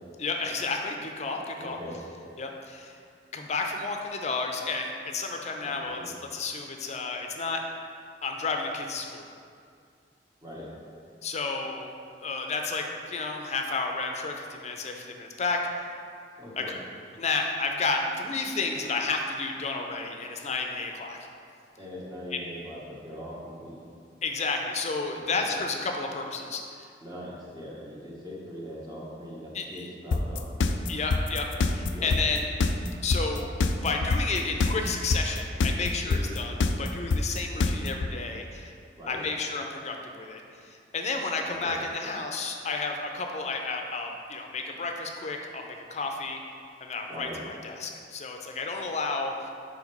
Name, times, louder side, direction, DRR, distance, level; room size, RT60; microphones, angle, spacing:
voice 1, 0.2-1.8 2.4-3.0 3.3-7.6 8.2-9.3 11.2-11.9 12.2-15.8 16.6-16.8 17.1-21.2 22.3-22.4 24.2-26.9 29.5-29.9 30.9-32.5 33.0-33.5 33.8-38.7 39.1-46.4 46.8-49.5, left 3 dB, 40° left, 3 dB, 0.6 m, -31 dB
voice 2, 1.6-2.0 5.6-6.1 10.4-10.7 16.4-16.8 21.8-23.8 25.1-25.5 27.0-29.4 29.7-30.5 31.9-32.1 36.1-36.4 39.0-39.2 41.4-41.8 47.1-47.4, equal, 20° right, -6 dB, 1.0 m, -41 dB
sound 1, 30.1-38.1, left 4 dB, 85° left, 0.4 m, -24 dB
4.9 x 4.4 x 5.3 m, 2.3 s
head